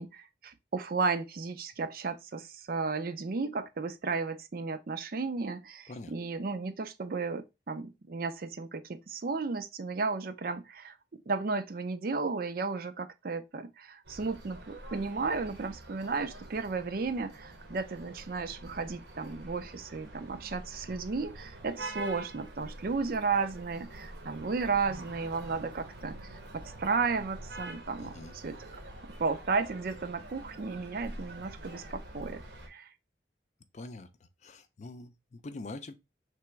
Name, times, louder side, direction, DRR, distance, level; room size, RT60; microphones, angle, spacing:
voice 1, 0.0-11.0 11.3-28.7 29.2-32.4 32.7-32.9, right 4 dB, 55° right, 0.5 m, -34 dB
sound 1, 14.0-32.7, right 2 dB, 80° right, 1.1 m, -46 dB
voice 2, 28.0-28.3 33.7-34.1 34.4-35.9, left 2 dB, 40° left, 0.4 m, -44 dB
3.3 x 3.0 x 4.4 m
head